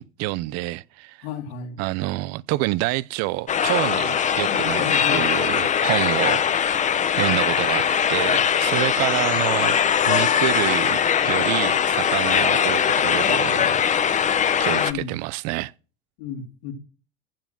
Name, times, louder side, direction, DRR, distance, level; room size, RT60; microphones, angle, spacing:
voice 1, 0.0-1.2 1.8-6.9 7.2-7.8 8.1-13.8 14.6-15.7, right 19 dB, 55° right, 0.6 m, -27 dB
voice 2, 1.2-1.8 4.4-5.3 14.7-15.2 16.2-16.7, left 7 dB, 75° left, 3.1 m, -33 dB
sound 1, 3.5-14.9, left 8 dB, 25° left, 0.8 m, -21 dB
15.0 x 7.1 x 5.9 m
supercardioid pair, 115°, 31 cm